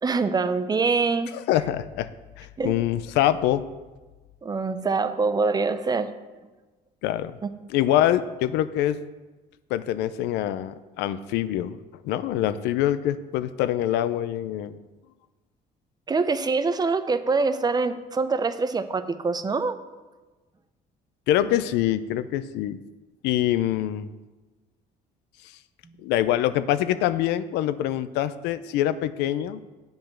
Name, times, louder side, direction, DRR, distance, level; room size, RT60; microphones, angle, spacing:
voice 1, 0.0-1.3 2.6-2.7 4.4-6.1 16.1-19.8, right 4 dB, 25° right, 11 dB, 0.6 m, -24 dB
voice 2, 1.3-2.1 2.4-3.6 7.0-7.4 7.7-9.0 9.7-11.8 12.0-14.8 21.3-22.8 23.2-24.1 25.4-25.6 26.0-29.6, left 12 dB, 90° left, 14 dB, 0.5 m, -25 dB
8.1 x 5.2 x 7.2 m, 1.2 s
cardioid pair, 110°, 17 cm